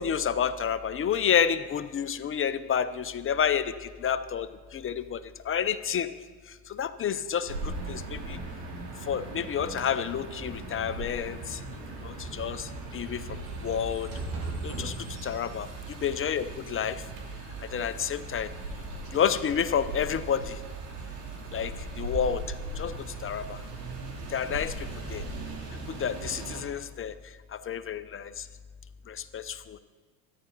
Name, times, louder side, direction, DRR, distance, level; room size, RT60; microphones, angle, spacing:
voice 1, 0.0-4.5 4.7-5.2 5.5-6.1 6.7-8.4 9.1-11.6 12.0-13.2 13.6-14.1 14.6-14.9 15.2-15.7 16.0-17.0 17.7-18.5 19.1-20.5 21.5-22.4 22.8-22.9 23.2-23.6 24.3-25.2 26.0-27.1 27.5-28.4 29.1-29.8, left 8 dB, 30° left, 13 dB, 0.7 m, -29 dB
sound 1, 7.5-26.6, right 2 dB, 65° right, 2.9 m, -39 dB
sound 2, 10.1-16.8, right 2 dB, 50° right, 3.0 m, -41 dB
13.5 x 10.5 x 5.5 m, 1.5 s
hypercardioid pair, 80°, 45 cm